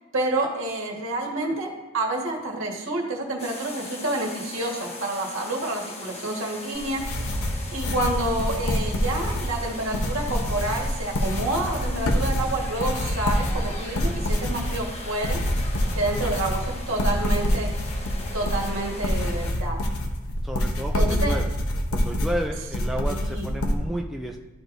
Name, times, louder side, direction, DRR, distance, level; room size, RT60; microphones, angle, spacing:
voice 1, 0.1-7.0 7.7-15.4 15.9-17.7 18.3-19.8 20.9-21.3 23.1-23.4, right 2 dB, 65° right, 0 dB, 1.6 m, -28 dB
sound 1, 3.4-19.5, left 2 dB, 30° left, 0.9 m, -40 dB
sound 2, 6.7-23.8, equal, 90° left, 0.9 m, -26 dB
voice 2, 20.4-21.5 21.9-24.4, equal, ahead, 0 dB, 0.4 m, -32 dB
13.0 x 4.6 x 2.6 m, 1.2 s
head